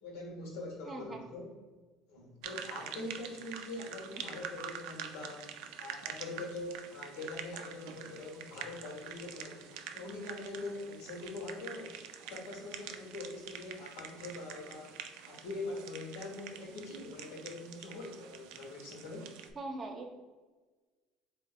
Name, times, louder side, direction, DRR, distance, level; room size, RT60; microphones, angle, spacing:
voice 1, 0.0-1.6 2.1-5.5 5.8-11.9 12.3-15.0 15.2-19.3, left 2 dB, 85° left, -1 dB, 1.2 m, -43 dB
voice 2, 0.9-1.3 19.6-20.1, right 2 dB, 35° right, 3 dB, 0.7 m, -41 dB
sound 1, 2.4-19.5, right 8 dB, 75° right, 0.3 m, -46 dB
3.5 x 2.6 x 3.6 m, 1.3 s
supercardioid pair, 90°, 0 cm